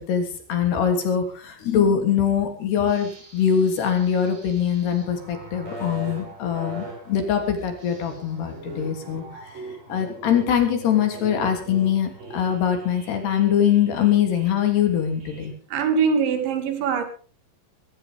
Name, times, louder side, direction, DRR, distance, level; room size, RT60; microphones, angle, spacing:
voice 1, 0.1-9.3 9.9-15.5, left 8 dB, 65° left, 5 dB, 5.0 m, -22 dB
sound 1, 2.9-15.5, right 2 dB, 50° right, 9.1 m, -40 dB
voice 2, 15.7-17.0, right 6 dB, 80° right, 7 dB, 4.8 m, -22 dB
21.5 x 15.5 x 3.6 m, 0.37 s
omnidirectional pair, 5.2 m